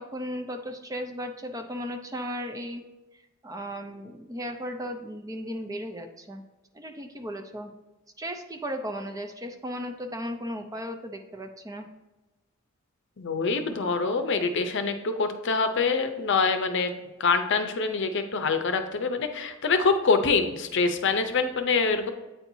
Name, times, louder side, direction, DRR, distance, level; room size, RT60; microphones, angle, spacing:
voice 1, 0.0-2.8 3.4-6.4 6.7-7.7 8.2-11.9, equal, 15° right, 5 dB, 0.5 m, -35 dB
voice 2, 13.2-16.9 17.2-22.1, left 4 dB, 60° left, 7 dB, 0.6 m, -25 dB
8.8 x 4.4 x 2.7 m, 1.1 s
head